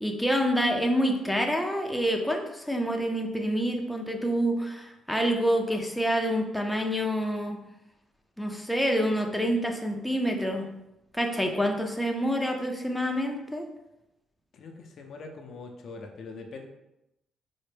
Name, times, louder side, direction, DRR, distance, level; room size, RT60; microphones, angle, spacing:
voice 1, 0.0-7.6 8.4-10.7 11.1-13.7, equal, ahead, 2 dB, 0.5 m, -27 dB
voice 2, 14.5-16.7, left 3 dB, 65° left, 2 dB, 0.5 m, -43 dB
4.2 x 2.0 x 3.3 m, 0.89 s
cardioid pair, 90°, 0 cm